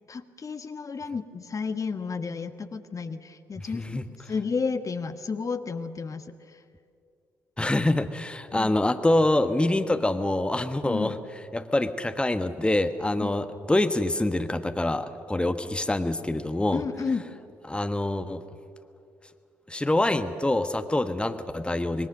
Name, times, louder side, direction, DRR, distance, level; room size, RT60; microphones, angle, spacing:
voice 1, 0.1-6.6 8.5-8.7 10.8-11.2 13.2-13.4 16.7-17.2, left 5 dB, 35° left, 9 dB, 1.4 m, -32 dB
voice 2, 3.7-4.0 7.6-11.2 11.5-16.8 17.7-18.4 19.7-22.1, left 1 dB, 10° left, 8 dB, 1.3 m, -25 dB
26.0 x 21.5 x 6.7 m, 2.4 s
figure-of-eight pair, 45°, 10 cm